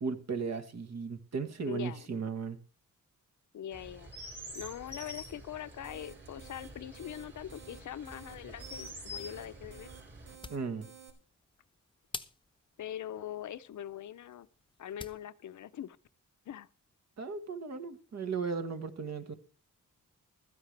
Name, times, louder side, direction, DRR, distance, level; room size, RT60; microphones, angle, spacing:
voice 1, 0.0-2.6 10.5-10.9 17.2-19.3, right 5 dB, 55° right, 1.5 m, -36 dB
voice 2, 1.6-2.1 3.5-4.1 4.5-9.9 12.8-14.5 14.8-16.0 16.5-16.7, left 10 dB, 65° left, 0.6 m, -42 dB
Chirp tweet, 3.7-10.3, equal, 35° right, 5.5 m, -47 dB
sound 1, 5.6-11.1, right 7 dB, 80° right, 3.1 m, -55 dB
sound 2, 10.1-15.3, left 3 dB, 15° left, 0.8 m, -50 dB
15.5 x 13.5 x 3.3 m
wide cardioid pair, 155°, 32 cm